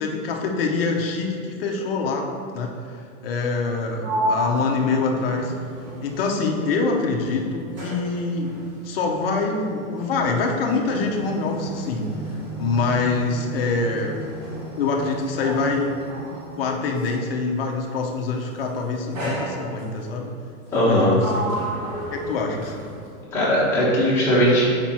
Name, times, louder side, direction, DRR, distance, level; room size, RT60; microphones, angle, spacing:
voice 1, 0.0-2.7 3.2-5.5 6.0-8.6 8.8-12.1 12.6-14.2 14.8-16.0 16.5-20.3 20.7-21.6 22.1-22.8, left 4 dB, 40° left, 1 dB, 0.8 m, -25 dB
Sliding door, 3.6-6.9 7.2-17.3 18.2-18.5 19.1-20.1 20.7-23.2, right 1 dB, 30° right, 1.4 m, -33 dB
voice 2, 20.7-21.1 23.3-24.6, equal, 5° left, -11 dB, 1.3 m, -18 dB
6.0 x 5.1 x 4.3 m, 2.3 s
supercardioid pair, 175°, 43 cm